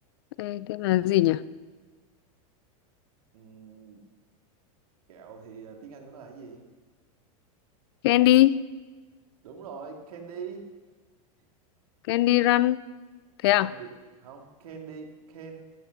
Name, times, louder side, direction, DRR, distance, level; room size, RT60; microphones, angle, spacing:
voice 1, 0.4-1.4 8.0-8.6 12.1-12.8 13.4-13.7, left 15 dB, 45° left, 18 dB, 0.4 m, -21 dB
voice 2, 3.3-4.0 5.1-6.6 9.4-10.7 13.6-15.7, right 6 dB, 90° right, 2 dB, 2.5 m, -43 dB
15.0 x 8.2 x 7.1 m, 1.3 s
supercardioid pair, 175°, 18 cm